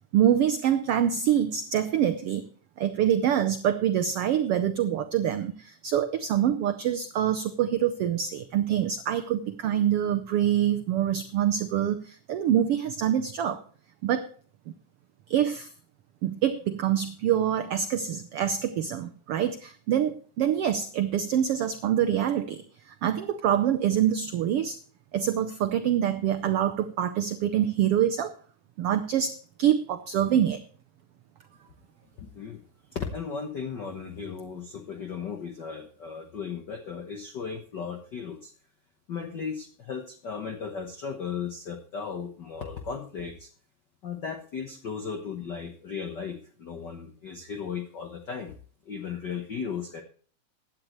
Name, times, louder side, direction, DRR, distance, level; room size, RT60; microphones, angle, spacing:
voice 1, 0.1-2.4 2.8-13.6 14.0-14.3 15.3-15.7 16.2-24.8 25.1-28.3 28.8-30.6, right 10 dB, 90° right, 10 dB, 1.3 m, -25 dB
voice 2, 32.2-32.6 32.9-38.5 39.1-43.5 44.0-48.5 48.8-50.0, left 6 dB, 70° left, 5 dB, 1.0 m, -36 dB
16.0 x 10.5 x 3.1 m, 0.43 s
omnidirectional pair, 3.6 m